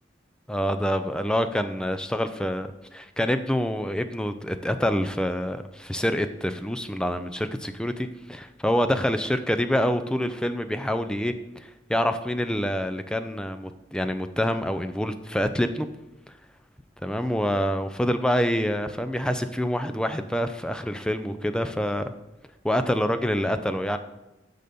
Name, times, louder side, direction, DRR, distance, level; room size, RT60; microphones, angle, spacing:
voice 1, 0.5-11.3 11.6-15.9 17.0-22.1 22.6-24.0, equal, 5° left, 9 dB, 0.4 m, -26 dB
10.0 x 4.1 x 6.8 m, 0.96 s
head